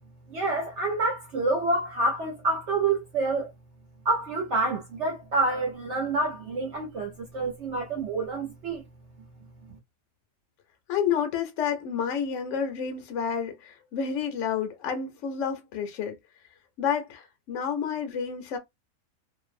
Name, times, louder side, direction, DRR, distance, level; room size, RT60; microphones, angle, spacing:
voice 1, 0.3-3.5 4.0-8.8, right 2 dB, 60° right, 0.9 m, -27 dB
voice 2, 10.9-16.2 16.8-18.6, left 7 dB, 70° left, 0.8 m, -29 dB
2.5 x 2.1 x 2.4 m
omnidirectional pair, 1.5 m